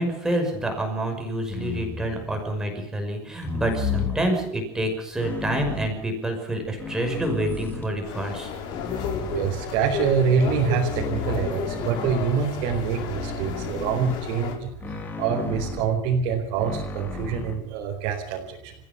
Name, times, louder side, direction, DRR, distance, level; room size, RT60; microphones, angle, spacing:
voice 1, 0.0-8.5, right 1 dB, 5° right, 3 dB, 5.8 m, -27 dB
sound 1, 1.5-2.5 3.4-4.3 5.2-6.0 6.7-8.0 8.7-9.8 10.4-12.3 13.1-14.3 14.8-15.9 16.6-17.6, left 4 dB, 20° left, 3.2 m, -33 dB
sound 2, 8.0-14.6, left 6 dB, 50° left, 5.1 m, -33 dB
voice 2, 9.3-18.7, right 6 dB, 55° right, -1 dB, 4.5 m, -25 dB
30.0 x 15.5 x 7.0 m, 0.74 s
cardioid pair, 170°, 10 cm